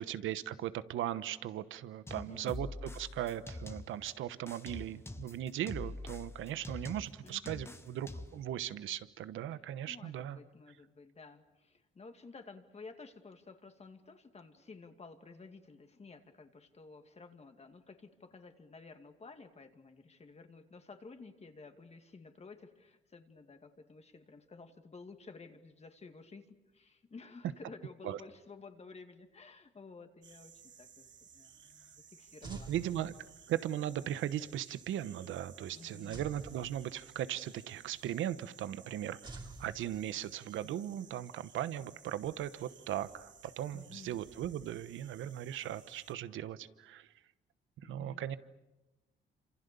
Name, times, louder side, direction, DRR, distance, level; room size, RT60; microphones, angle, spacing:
voice 1, 0.0-10.4 28.0-28.2 32.4-33.1 33.5-39.2 39.6-47.1 47.8-48.4, right 11 dB, 80° right, 14 dB, 1.1 m, -38 dB
voice 2, 2.1-2.6 7.2-7.7 9.9-32.7 35.7-36.3 43.7-44.2 47.8-48.2, left 4 dB, 30° left, 6 dB, 2.4 m, -53 dB
sound 1, 2.1-4.1 4.5-8.5, left 2 dB, 10° left, 1.5 m, -45 dB
sound 2, 30.2-46.1, right 7 dB, 65° right, 3.1 m, -58 dB
sound 3, 32.4-33.7 36.1-37.4 39.2-40.5, right 2 dB, 20° right, 2.8 m, -49 dB
28.0 x 26.5 x 6.9 m, 1.0 s
cardioid pair, 90°, 20 cm